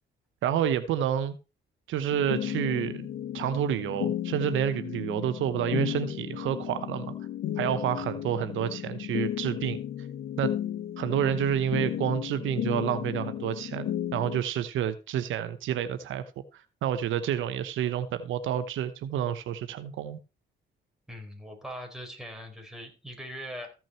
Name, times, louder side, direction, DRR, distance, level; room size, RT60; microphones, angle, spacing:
voice 1, 0.4-1.4 1.9-3.1 3.3-7.1 7.6-9.8 10.4-10.5 11.0-16.2 16.5-20.2, right 10 dB, 80° right, 1.0 m, -29 dB
sound 1, 2.1-14.4, left 11 dB, 80° left, 1.5 m, -34 dB
voice 2, 21.1-23.7, equal, ahead, 4.5 m, -41 dB
15.0 x 6.1 x 4.4 m
cardioid pair, 90°, 20 cm